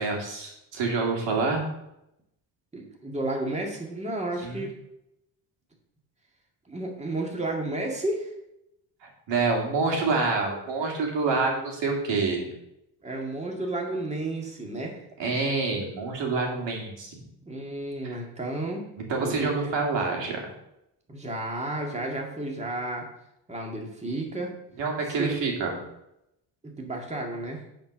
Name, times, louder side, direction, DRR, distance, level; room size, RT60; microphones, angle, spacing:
voice 1, 0.0-1.7 4.4-4.6 9.0-12.5 15.2-17.2 18.0-18.2 19.0-20.5 24.8-25.8, right 3 dB, 85° right, 0 dB, 2.4 m, -27 dB
voice 2, 2.7-4.7 6.7-8.3 13.0-15.0 17.5-18.9 19.2-19.7 21.1-23.1 23.5-24.5 25.2-25.3 26.6-27.6, right 2 dB, 15° right, 0 dB, 2.0 m, -32 dB
9.3 x 4.5 x 6.2 m, 0.82 s
cardioid pair, 100°, 42 cm